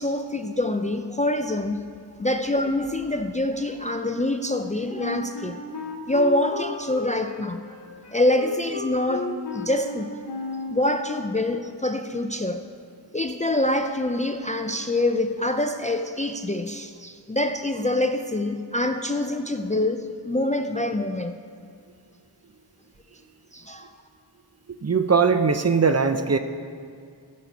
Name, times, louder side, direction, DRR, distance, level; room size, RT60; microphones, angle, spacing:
voice 1, 0.0-1.9 2.2-5.6 6.1-7.6 8.1-10.1 10.7-12.7 13.1-21.4 23.5-23.9, left 1 dB, 20° left, 7 dB, 0.4 m, -25 dB
Wind instrument woodwind instrument, 4.9-10.8, left 3 dB, 75° left, 1.3 m, -34 dB
voice 2, 24.8-26.4, right 5 dB, 35° right, 8 dB, 0.6 m, -20 dB
14.5 x 7.3 x 4.7 m, 2.2 s
wide cardioid pair, 80°, 42 cm